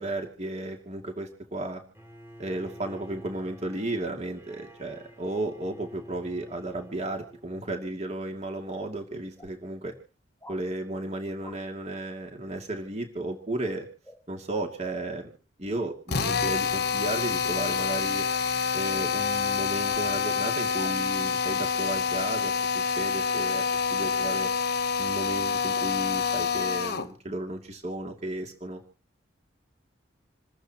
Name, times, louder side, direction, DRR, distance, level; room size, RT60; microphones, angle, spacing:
voice 1, 0.0-1.8 2.4-9.9 10.5-13.9 14.3-15.3 15.6-18.3 18.7-24.5 25.0-28.8, right 1 dB, 35° right, 2 dB, 2.6 m, -34 dB
Bowed string instrument, 1.9-8.1, equal, 10° right, 3.3 m, -49 dB
sound 1, 8.7-8.8 9.4-9.6 10.4-10.6 11.4-11.6 14.0-14.2 16.6-16.9 18.2-18.4 19.9-20.1 20.7-21.0 22.2-22.3, left 1 dB, 10° left, 1.4 m, -49 dB
Drill, 16.1-27.1, left 6 dB, 55° left, 1.1 m, -27 dB
28.0 x 14.5 x 3.0 m, 0.36 s
head